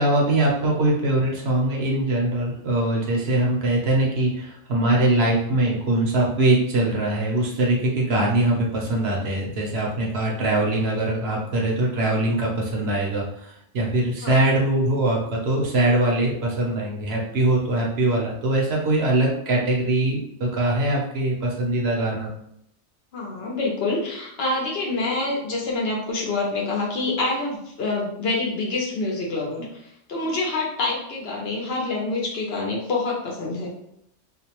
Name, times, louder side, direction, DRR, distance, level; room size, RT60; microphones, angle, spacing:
voice 1, 0.0-22.3, right 1 dB, 65° right, -2 dB, 0.8 m, -22 dB
voice 2, 23.1-29.8 30.1-33.7, left 3 dB, 60° left, -3 dB, 0.8 m, -26 dB
2.5 x 2.0 x 2.8 m, 0.75 s
omnidirectional pair, 1.3 m